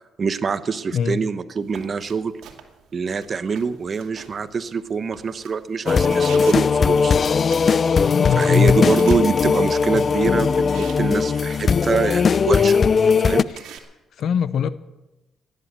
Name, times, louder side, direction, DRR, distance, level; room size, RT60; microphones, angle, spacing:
voice 1, 0.2-2.3 2.9-7.1 8.3-12.8 13.2-13.4, right 5 dB, 45° right, 12 dB, 1.0 m, -25 dB
voice 2, 0.9-1.2 8.0-8.9 9.9-10.0 14.2-14.7, left 7 dB, 65° left, 15 dB, 0.8 m, -21 dB
sound 1, 1.6-13.8, right 8 dB, 80° right, 2.3 m, -45 dB
sound 2, 5.9-13.4, left 5 dB, 45° left, 0.4 m, -18 dB
17.5 x 10.5 x 6.9 m, 1.0 s
cardioid pair, 90°, 0 cm